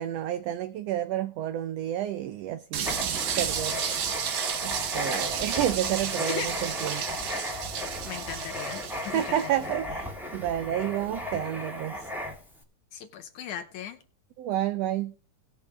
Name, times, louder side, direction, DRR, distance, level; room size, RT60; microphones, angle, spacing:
voice 1, 0.0-3.8 4.6-7.2 9.1-12.1 14.4-15.1, right 12 dB, 85° right, 1.4 m, -30 dB
sound 1, 2.7-9.6, right 8 dB, 65° right, 1.3 m, -32 dB
Writing, 2.8-12.6, left 1 dB, ahead, 1.6 m, -35 dB
voice 2, 8.1-9.7 12.9-14.0, left 9 dB, 80° left, 2.3 m, -38 dB
17.5 x 7.0 x 3.3 m
omnidirectional pair, 3.5 m